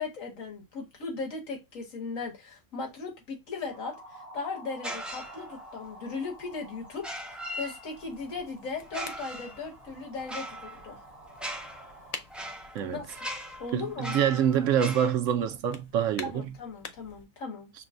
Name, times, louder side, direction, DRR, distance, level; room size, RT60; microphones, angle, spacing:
voice 1, 0.0-11.0 12.9-13.0 13.6-14.1 16.2-17.7, left 4 dB, 70° left, 1.8 m, -37 dB
sound 1, 3.7-12.2, right 1 dB, 35° right, 0.7 m, -50 dB
sound 2, 4.8-5.8 6.9-8.2 8.8-15.1, equal, ahead, 0.3 m, -40 dB
sound 3, 7.9-17.2, left 5 dB, 85° left, 0.3 m, -48 dB
voice 2, 13.7-16.4, right 9 dB, 70° right, 0.9 m, -26 dB
6.1 x 2.1 x 2.4 m
omnidirectional pair, 1.4 m